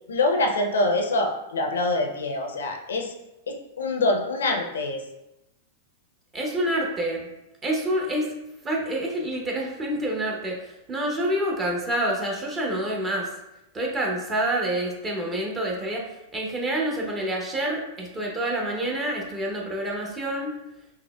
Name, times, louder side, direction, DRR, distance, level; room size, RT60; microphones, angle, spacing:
voice 1, 0.1-3.1 3.5-5.0, left 2 dB, 75° left, 3 dB, 0.5 m, -25 dB
voice 2, 6.3-7.3 7.6-8.4 8.6-13.3 13.7-20.5, right 1 dB, 20° right, -1 dB, 0.8 m, -27 dB
5.4 x 2.0 x 2.2 m, 0.92 s
hypercardioid pair, 100°, 0 cm